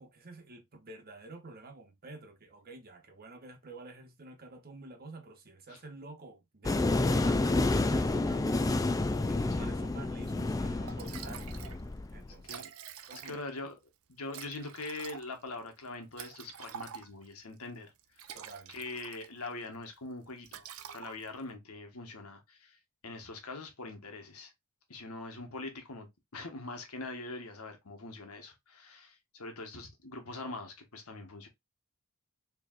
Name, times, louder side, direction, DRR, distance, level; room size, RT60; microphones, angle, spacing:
voice 1, 0.0-8.7 9.3-11.6 12.1-12.7 13.1-13.4 18.3-18.8, right 3 dB, 45° right, 1.1 m, -49 dB
sound 1, 6.6-12.3, left 2 dB, 15° left, 0.3 m, -29 dB
Liquid, 10.5-10.6 10.9-11.8 12.1-12.2 12.4-13.6 14.3-17.3 18.0-19.5 19.8-20.1 20.4-21.5, right 8 dB, 70° right, 0.5 m, -47 dB
voice 2, 13.2-13.8 14.1-18.3 18.7-22.8 23.0-24.5 24.9-26.1 26.3-31.5, left 2 dB, 80° left, 1.3 m, -43 dB
4.6 x 3.2 x 2.4 m
head